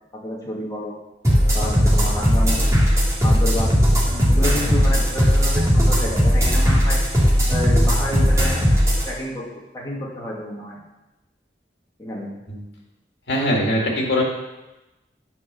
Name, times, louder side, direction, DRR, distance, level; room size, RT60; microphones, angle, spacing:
voice 1, 0.2-1.0 1.5-2.8 3.2-3.8 4.3-7.0 7.5-8.7 9.1-9.4 9.7-10.8 12.0-12.3, left 1 dB, 20° left, -5 dB, 2.3 m, -29 dB
sound 1, 1.2-9.0, equal, 20° right, 2.4 m, -17 dB
voice 2, 13.3-14.2, equal, 70° left, -1 dB, 2.3 m, -21 dB
9.6 x 5.0 x 6.9 m, 1.0 s
head